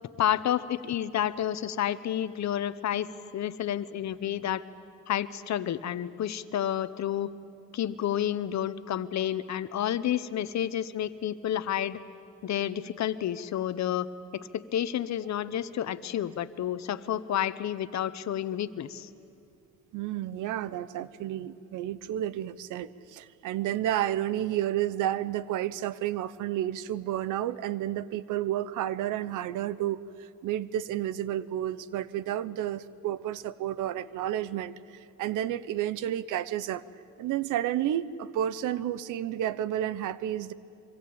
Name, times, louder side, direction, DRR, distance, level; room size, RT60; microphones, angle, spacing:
voice 1, 0.2-4.6 5.1-7.3 7.7-12.0 12.4-14.1 14.3-19.1, left 10 dB, 65° left, 14 dB, 1.1 m, -30 dB
voice 2, 19.9-36.8 37.2-40.5, right 12 dB, 90° right, 17 dB, 0.9 m, -31 dB
25.0 x 24.5 x 8.7 m, 2.8 s
cardioid pair, 90°, 30 cm